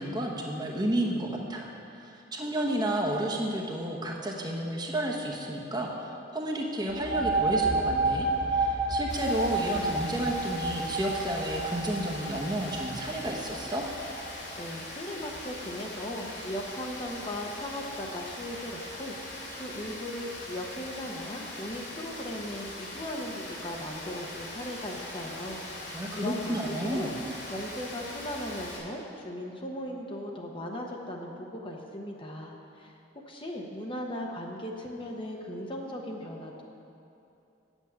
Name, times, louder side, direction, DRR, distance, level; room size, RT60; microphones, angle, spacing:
voice 1, 0.0-13.8 25.9-27.1, right 1 dB, 20° right, -1 dB, 1.0 m, -31 dB
sound 1, 6.9-14.3, right 2 dB, 50° right, 2.1 m, -30 dB
Rain, 9.1-28.8, left 1 dB, 70° left, 3.0 m, -41 dB
voice 2, 14.6-27.1 27.5-32.9 33.3-36.6, left 1 dB, 30° left, 0 dB, 0.9 m, -38 dB
8.1 x 7.1 x 8.6 m, 2.8 s
head